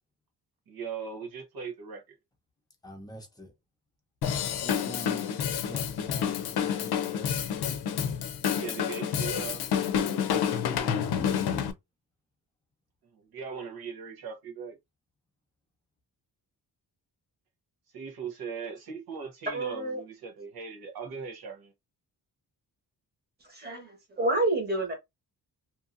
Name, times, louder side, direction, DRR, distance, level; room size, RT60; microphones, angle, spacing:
voice 1, 0.7-2.2 8.5-9.6 13.1-14.8 17.9-21.7, right 6 dB, 70° right, 1.0 m, -39 dB
voice 2, 2.8-3.5 4.6-7.3 10.3-11.3, right 1 dB, 10° left, 0.7 m, -46 dB
Drum kit / Drum, 4.2-11.7, left 8 dB, 80° left, 0.6 m, -29 dB
voice 3, 19.5-20.0 23.4-24.9, right 2 dB, 25° right, 1.3 m, -29 dB
2.8 x 2.6 x 2.5 m
wide cardioid pair, 155°, 38 cm